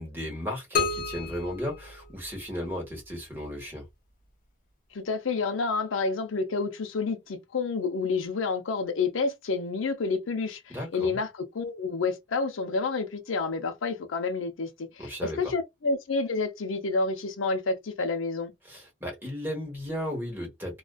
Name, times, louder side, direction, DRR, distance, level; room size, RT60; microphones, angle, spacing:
voice 1, 0.0-3.9 10.7-11.2 15.0-15.5 18.6-20.8, equal, 10° right, 1.1 m, -35 dB
sound 1, 0.7-2.7, left 5 dB, 45° left, 0.5 m, -31 dB
voice 2, 4.9-18.5, left 4 dB, 90° left, 0.6 m, -29 dB
2.4 x 2.3 x 2.2 m
head